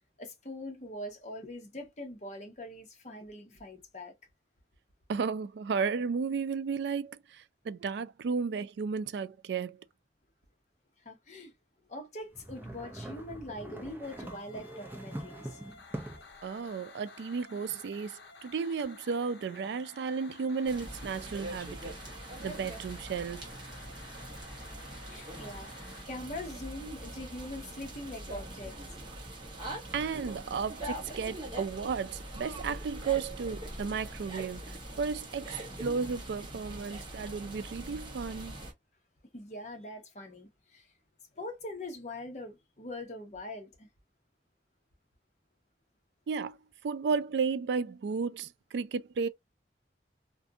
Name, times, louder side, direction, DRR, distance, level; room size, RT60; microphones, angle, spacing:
voice 1, 0.2-4.1 11.0-11.5 11.9-15.6 25.1-28.8 39.3-40.9 41.4-43.9, left 1 dB, 40° left, 0.8 m, -42 dB
voice 2, 5.1-9.8 16.4-22.0 22.4-23.5 29.9-38.6 46.3-49.3, right 5 dB, 75° right, 0.3 m, -34 dB
sound 1, 12.3-16.4, right 1 dB, 10° right, 0.4 m, -43 dB
sound 2, 14.0-26.0, left 3 dB, 75° left, 0.6 m, -53 dB
sound 3, 20.6-38.7, right 1 dB, 25° right, 0.8 m, -43 dB
2.6 x 2.5 x 2.3 m
head